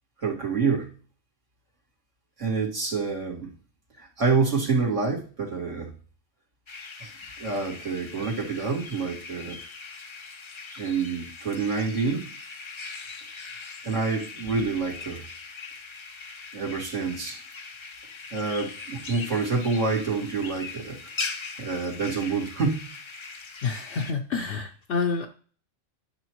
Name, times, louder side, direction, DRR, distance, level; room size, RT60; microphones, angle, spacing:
voice 1, 0.2-0.9 2.4-3.5 4.0-5.9 7.0-7.1 7.4-9.6 10.8-12.3 13.8-15.2 16.5-17.4 18.3-21.0 21.6-23.0, right 4 dB, 85° right, -5 dB, 2.7 m, -27 dB
sound 1, 6.7-24.1, left 4 dB, 40° left, 0.4 m, -40 dB
voice 2, 23.6-25.3, left 5 dB, 70° left, 0 dB, 1.1 m, -29 dB
11.5 x 5.8 x 3.1 m, 0.41 s
omnidirectional pair, 1.3 m